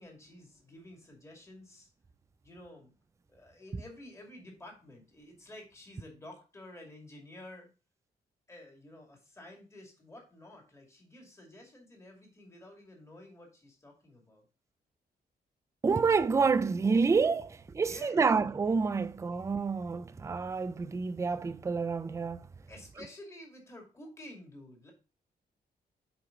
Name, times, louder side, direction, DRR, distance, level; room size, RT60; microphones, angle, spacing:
voice 1, 0.0-1.9 2.4-2.9 3.3-7.7 8.5-14.4 17.8-18.2 22.7-24.9, left 1 dB, 15° left, 2.3 m, -51 dB
voice 2, 15.8-22.5, right 5 dB, 15° right, 0.4 m, -28 dB
8.5 x 4.7 x 3.7 m
wide cardioid pair, 165°, 17 cm